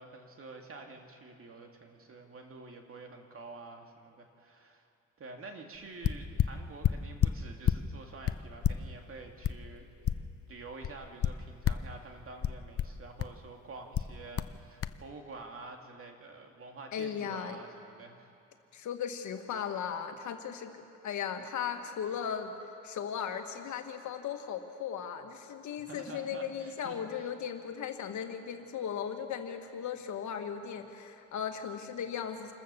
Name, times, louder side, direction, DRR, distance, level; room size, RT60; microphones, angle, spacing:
voice 1, 0.0-4.9 5.2-18.3 25.9-27.3, right 3 dB, 45° right, 3 dB, 2.5 m, -48 dB
sound 1, 5.7-5.8 6.0-7.9 8.2-10.5 10.8-11.9 12.4-13.4 13.9-14.5 14.8-15.0, left 10 dB, 50° left, 0.7 m, -30 dB
voice 2, 16.9-17.6 18.7-22.5 22.8-32.5, left 8 dB, 70° left, 5 dB, 1.7 m, -37 dB
27.5 x 14.5 x 6.9 m, 2.6 s
cardioid pair, 90°, 30 cm